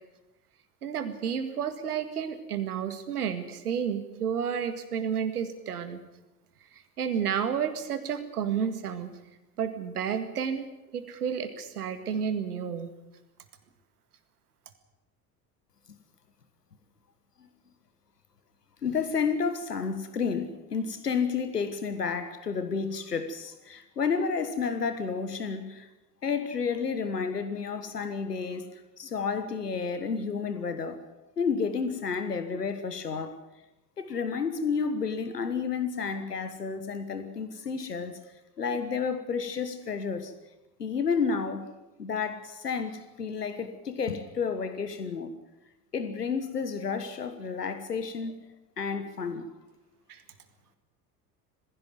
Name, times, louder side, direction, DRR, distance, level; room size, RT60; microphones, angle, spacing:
voice 1, 0.8-6.0 7.0-9.1 9.6-10.7 10.9-12.9 50.1-50.2, right 7 dB, 75° right, 10 dB, 2.0 m, -31 dB
voice 2, 18.8-25.9 26.2-31.0 31.4-33.4 34.0-38.2 38.6-40.3 40.8-41.7 42.0-45.3 45.9-48.4 48.8-49.5, left 5 dB, 80° left, 10 dB, 1.4 m, -31 dB
20.0 x 16.0 x 9.3 m, 0.99 s
figure-of-eight pair, 65°, 46 cm